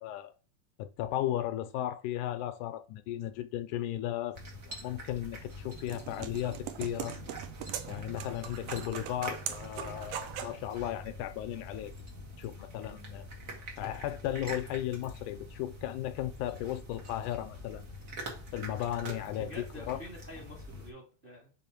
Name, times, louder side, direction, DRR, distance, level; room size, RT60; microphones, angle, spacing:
voice 1, 0.0-0.3 0.8-4.4 4.7-7.2 7.9-11.9 12.4-13.2 13.8-17.9 18.5-19.5 19.8-20.0, left 12 dB, 80° left, 2.0 m, -35 dB
sound 1, 4.3-20.9, equal, 50° right, 1.0 m, -45 dB
sound 2, 5.4-10.6, right 11 dB, 85° right, 1.4 m, -41 dB
voice 2, 19.4-21.5, left 1 dB, 30° right, 0.9 m, -47 dB
5.3 x 3.7 x 5.8 m
omnidirectional pair, 3.7 m